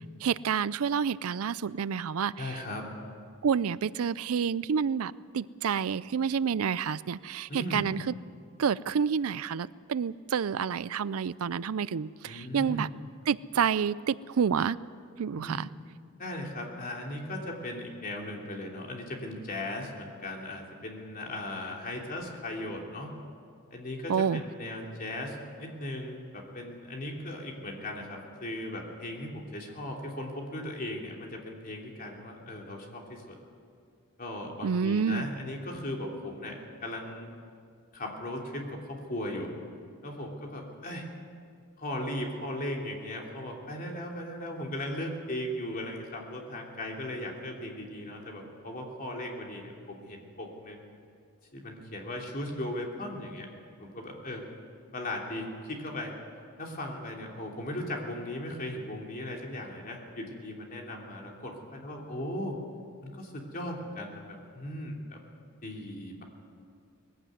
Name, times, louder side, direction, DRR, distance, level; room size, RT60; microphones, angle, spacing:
voice 1, 0.2-2.3 3.4-8.1 8.6-12.9 13.3-14.8 15.2-15.7 24.1-24.4 34.6-35.3, right 7 dB, 75° right, 19 dB, 0.4 m, -29 dB
voice 2, 2.4-2.9 7.5-8.0 12.2-12.9 15.4-15.7 16.2-23.1 23.7-33.4 34.2-37.3 37.9-39.5 40.0-41.1 41.8-50.8 51.5-53.5 53.8-54.4 54.9-56.1 56.6-62.6 63.0-65.2 65.6-66.2, left 1 dB, 40° left, 0 dB, 3.1 m, -37 dB
20.5 x 15.5 x 9.4 m, 2.3 s
head